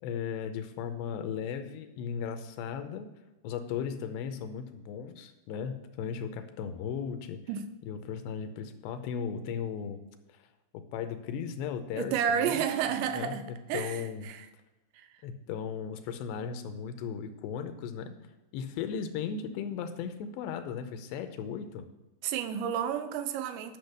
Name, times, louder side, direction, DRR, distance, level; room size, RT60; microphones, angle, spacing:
voice 1, 0.0-3.1 3.4-7.5 7.8-10.0 10.3-10.4 10.7-12.6 13.1-14.3 15.2-18.1 18.5-21.9, left 7 dB, 80° left, 2.8 m, -36 dB
voice 2, 12.0-13.4 13.7-14.5 15.0-15.1 22.2-23.8, right 8 dB, 90° right, 3.1 m, -31 dB
10.5 x 6.3 x 6.6 m
omnidirectional pair, 5.1 m